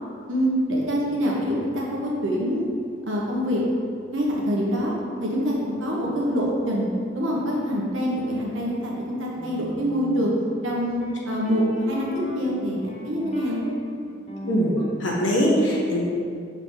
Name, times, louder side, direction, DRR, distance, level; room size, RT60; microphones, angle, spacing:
voice 1, 0.3-2.7 3.1-3.6 4.1-4.9 5.2-6.9 7.1-10.3 10.6-13.6, equal, 85° right, -4 dB, 1.4 m, -25 dB
sound 1, 9.3-15.0, left 1 dB, 35° left, 0.8 m, -38 dB
voice 2, 14.4-16.0, equal, 75° left, -3 dB, 1.3 m, -22 dB
6.6 x 4.7 x 3.9 m, 2.3 s
head